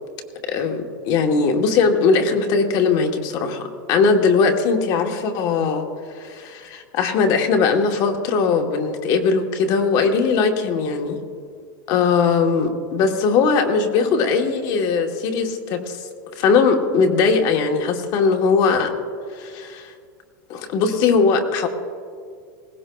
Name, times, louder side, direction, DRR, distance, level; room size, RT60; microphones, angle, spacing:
voice 1, 0.4-5.9 6.1-11.2 11.9-16.0 16.4-18.9 19.3-19.9 20.5-21.7, left 5 dB, 35° left, 4 dB, 1.1 m, -20 dB
20.0 x 17.5 x 2.3 m, 2.2 s
supercardioid pair, 165°, 11 cm